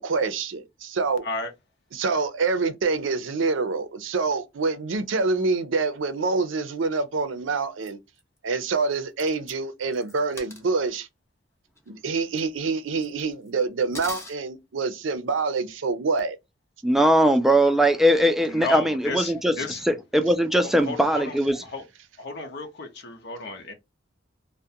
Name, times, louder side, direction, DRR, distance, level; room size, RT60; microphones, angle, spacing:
voice 1, 0.0-1.2 1.9-8.0 8.4-11.1 11.9-16.4, right 4 dB, 85° right, 0.5 m, -26 dB
sound 1, 7.8-7.9 8.2-8.3 8.9-9.0 9.2-9.5 9.9-10.7 11.8-11.9 12.1-12.4 13.0-13.5 13.9-14.3, left 2 dB, 15° left, 0.7 m, -40 dB
voice 2, 16.8-19.5 19.9-21.6, right 1 dB, ahead, 0.3 m, -20 dB
voice 3, 18.5-19.8 20.6-21.4 21.6-21.8 22.2-23.7, left 3 dB, 60° left, 0.6 m, -33 dB
2.4 x 2.1 x 2.7 m
head